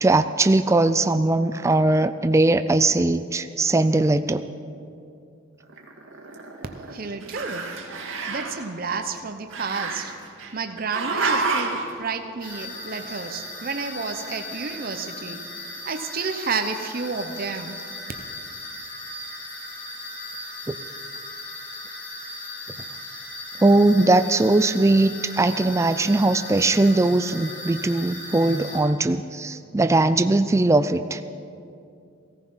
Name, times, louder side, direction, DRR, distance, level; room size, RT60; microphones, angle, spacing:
voice 1, 0.0-4.4 20.7-20.8 23.6-31.2, right 2 dB, 15° right, 11 dB, 0.3 m, -20 dB
Growling, 5.7-6.9 7.2-8.6 9.5-10.5 10.9-11.9, right 3 dB, 75° right, 2.0 m, -28 dB
voice 2, 6.9-7.7 8.3-10.1 10.5-15.4 15.9-17.8, right 4 dB, 45° right, 7 dB, 0.8 m, -31 dB
sound 1, 12.4-28.8, left 2 dB, 45° left, 3.9 m, -37 dB
16.5 x 14.5 x 5.6 m, 2.5 s
head